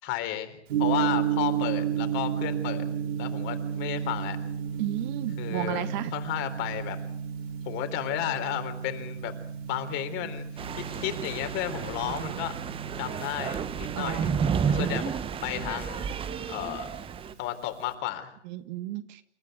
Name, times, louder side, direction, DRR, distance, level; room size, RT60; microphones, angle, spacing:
voice 1, 0.0-2.8 3.2-4.4 5.4-5.8 6.1-7.0 7.7-9.3 9.7-12.6 13.0-14.3 14.7-16.0 16.5-16.9 17.4-18.3, left 13 dB, 35° left, 8 dB, 3.9 m, -33 dB
Gong, 0.7-17.9, right 8 dB, 65° right, 6.0 m, -33 dB
voice 2, 4.8-6.1 12.0-12.4 14.0-14.4 18.5-19.2, right 15 dB, 40° right, 11 dB, 1.8 m, -33 dB
sound 1, 10.6-17.3, right 7 dB, 15° right, 1.2 m, -31 dB
29.0 x 14.5 x 9.2 m, 0.67 s
hypercardioid pair, 120°, 34 cm